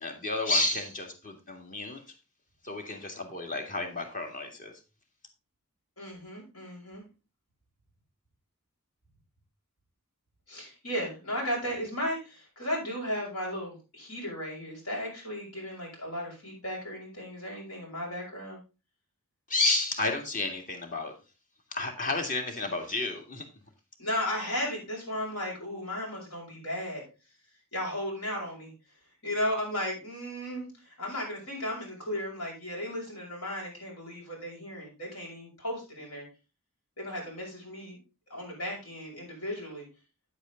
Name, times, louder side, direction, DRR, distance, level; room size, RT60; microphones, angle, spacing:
voice 1, 0.0-2.0 2.6-4.7 19.5-21.1 21.7-23.4, left 2 dB, 40° left, 5 dB, 2.1 m, -31 dB
voice 2, 6.0-7.0 10.5-18.6 24.0-27.0 27.7-28.7 29.2-36.3 37.0-38.0 38.3-39.9, left 1 dB, 80° left, -2 dB, 6.2 m, -35 dB
9.2 x 8.3 x 3.8 m, 0.30 s
head